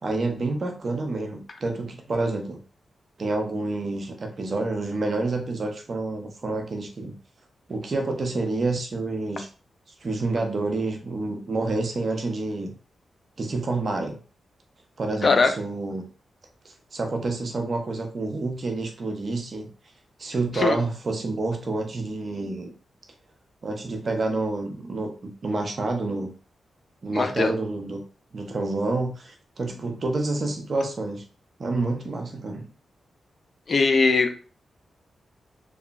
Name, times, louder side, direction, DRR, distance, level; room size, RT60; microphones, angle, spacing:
voice 1, 0.0-2.6 3.2-7.1 7.7-9.5 10.0-12.7 13.4-14.2 15.0-16.0 16.9-19.7 20.2-22.7 23.6-26.3 27.0-28.0 28.3-31.2 31.6-32.7, right 2 dB, 55° right, 4 dB, 0.7 m, -28 dB
voice 2, 27.1-27.5 33.7-34.3, left 4 dB, 55° left, 6 dB, 0.5 m, -20 dB
2.9 x 2.3 x 2.3 m, 0.37 s
supercardioid pair, 40°, 0 cm